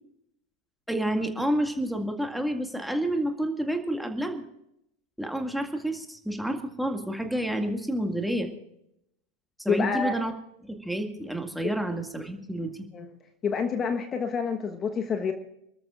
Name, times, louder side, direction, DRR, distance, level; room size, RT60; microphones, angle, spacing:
voice 1, 0.9-4.5 5.2-8.5 9.6-10.3 10.6-12.9, right 1 dB, ahead, 4 dB, 2.1 m, -29 dB
voice 2, 9.7-10.2 11.6-11.7 12.9-13.1 13.4-15.3, left 5 dB, 30° left, 6 dB, 1.3 m, -28 dB
28.5 x 13.5 x 2.5 m, 0.80 s
figure-of-eight pair, 85°, 0 cm